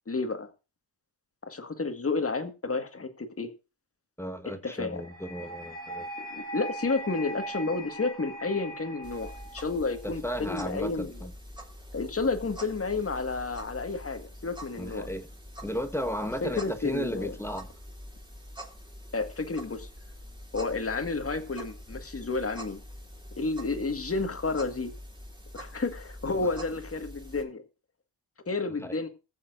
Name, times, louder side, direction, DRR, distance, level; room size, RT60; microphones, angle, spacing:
voice 1, 0.1-0.5 1.4-3.5 4.6-5.0 6.3-11.2 11.9-15.1 16.4-17.3 19.1-19.9 20.5-22.8 23.4-24.9 25.5-27.6 28.5-29.1, left 3 dB, 30° left, 1.8 m, -31 dB
voice 2, 4.2-6.1 10.0-11.3 14.8-15.3 15.6-17.7 28.7-28.9, equal, 5° left, 1.4 m, -34 dB
sound 1, 4.9-10.0, right 1 dB, 35° right, 3.1 m, -40 dB
sound 2, 9.0-27.4, equal, 10° right, 2.8 m, -45 dB
21.0 x 7.1 x 2.6 m
cardioid pair, 85°, 43 cm